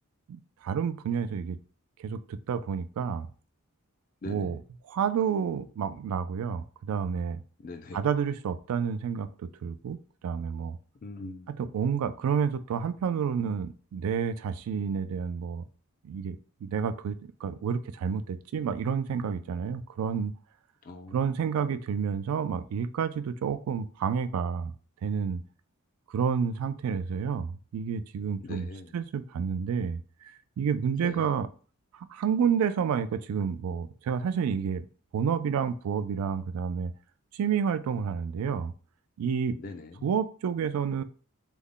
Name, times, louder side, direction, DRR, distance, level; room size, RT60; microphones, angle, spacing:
voice 1, 0.3-1.6 2.0-3.3 4.3-4.6 4.9-7.4 7.9-9.3 9.6-10.0 10.2-10.8 11.6-15.6 16.0-20.3 21.1-24.7 25.0-25.4 26.1-30.0 30.6-31.5 32.1-34.9 35.1-36.9 37.4-38.7 39.2-39.6 40.0-41.0, right 7 dB, 85° right, 13 dB, 0.3 m, -29 dB
voice 2, 7.6-8.0 11.0-11.5 20.9-21.2 28.4-29.0 31.0-31.3 39.6-40.1, left 2 dB, 40° left, 6 dB, 0.3 m, -41 dB
3.4 x 2.1 x 3.6 m, 0.40 s
head